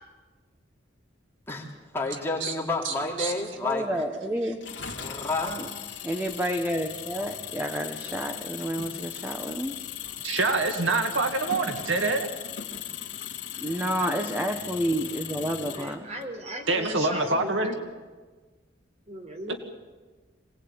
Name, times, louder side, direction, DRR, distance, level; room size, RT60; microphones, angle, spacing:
voice 1, 1.9-4.0 5.0-5.6 12.7-12.8 13.5-13.8, left 3 dB, 15° left, -2 dB, 3.8 m, -30 dB
voice 2, 2.8-3.3 10.2-12.3 16.7-17.8 19.5-19.6, right 3 dB, 85° right, 5 dB, 2.0 m, -26 dB
voice 3, 3.6-4.6 5.4-5.6 6.0-9.8 13.6-16.0, equal, 10° right, 5 dB, 1.3 m, -30 dB
Engine, 4.6-16.2, left 9 dB, 70° left, 2.5 m, -38 dB
voice 4, 15.6-17.9 19.1-19.6, right 1 dB, 35° right, 3 dB, 4.2 m, -37 dB
26.0 x 19.0 x 8.9 m, 1.3 s
head